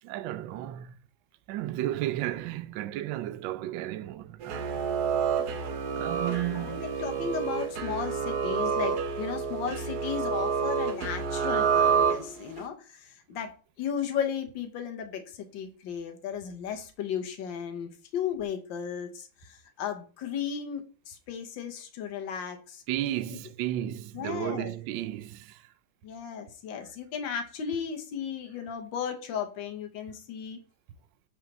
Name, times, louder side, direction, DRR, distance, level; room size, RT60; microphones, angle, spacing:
voice 1, 0.0-1.0 1.5-4.8 5.9-6.8 7.2-7.3 22.9-25.7, right 13 dB, 80° right, 1.3 m, -33 dB
sound 1, 4.4-12.6, right 6 dB, 60° right, 1.3 m, -28 dB
voice 2, 6.4-22.8 23.3-23.4 24.1-24.7 26.0-30.6, left 8 dB, 70° left, 1.7 m, -35 dB
5.7 x 4.1 x 6.0 m
omnidirectional pair, 2.1 m